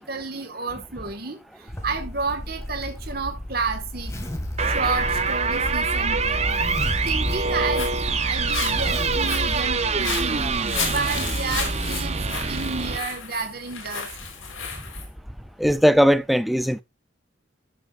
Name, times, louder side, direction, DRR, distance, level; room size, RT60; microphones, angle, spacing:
voice 1, 0.1-1.4 1.8-4.1 4.6-6.4 7.1-10.5 10.8-14.1, right 4 dB, 50° right, 1.6 m, -31 dB
Zipper (clothing), 1.7-11.6, left 1 dB, 15° left, 2.0 m, -33 dB
sound 1, 4.6-13.0, right 4 dB, 35° right, 0.8 m, -25 dB
Walk footsteps, 7.4-15.1, left 6 dB, 90° left, 4.0 m, -34 dB
voice 2, 15.6-16.8, equal, ahead, 0.5 m, -18 dB
12.5 x 6.9 x 2.5 m
head